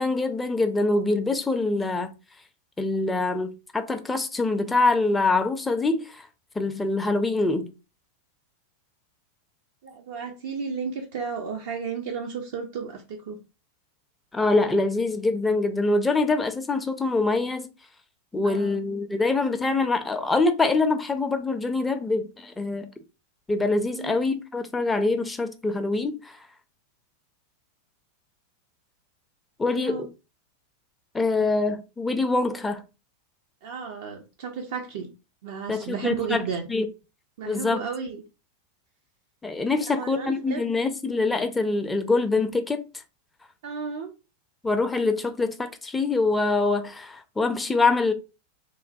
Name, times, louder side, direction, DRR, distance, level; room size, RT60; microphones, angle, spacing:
voice 1, 0.0-2.1 2.8-6.2 6.6-7.7 14.3-17.7 18.3-22.9 23.5-26.4 29.6-30.1 31.1-32.8 35.7-36.4 36.7-36.9 37.4-37.8 39.4-42.8 44.6-48.1, left 3 dB, 10° left, 0.4 m, -24 dB
voice 2, 9.8-13.4 18.4-18.8 23.9-24.1 29.7-30.0 33.6-35.1 35.4-36.7 37.4-38.2 39.9-40.6 43.6-44.1, right 5 dB, 55° right, 0.4 m, -33 dB
3.0 x 2.1 x 2.6 m
figure-of-eight pair, 90°, 0 cm